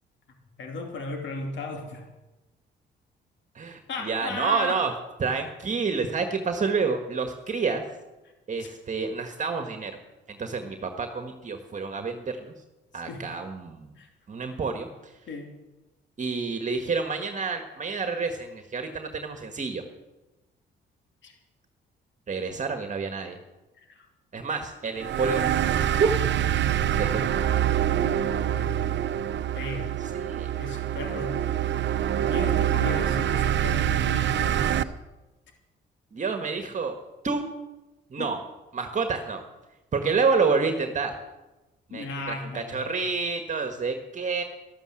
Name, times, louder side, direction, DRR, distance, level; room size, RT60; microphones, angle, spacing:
voice 1, 0.6-2.0 3.9-4.8 8.2-8.3 8.6-8.7 12.9-13.2 13.9-14.1 15.3-15.5 21.2-21.3 23.8-24.1 28.0-28.9 29.5-29.9 30.6-31.4 32.1-34.9 38.2-38.3 41.9-42.8, left 3 dB, 70° left, 3 dB, 2.8 m, -36 dB
voice 2, 3.6-4.9 5.2-7.9 8.5-10.0 10.3-12.5 12.9-13.9 14.3-15.1 16.2-19.8 22.3-23.4 24.3-25.4 26.0-26.1 26.9-27.2 30.1-30.5 36.1-37.0 37.2-37.5 38.1-38.4 38.7-39.4 39.9-41.2 41.9-44.4, right 4 dB, 40° right, 6 dB, 1.6 m, -28 dB
sound 1, 25.0-34.8, right 10 dB, 65° right, 0.8 m, -25 dB
13.0 x 12.5 x 7.7 m, 1.1 s
cardioid pair, 90°, 20 cm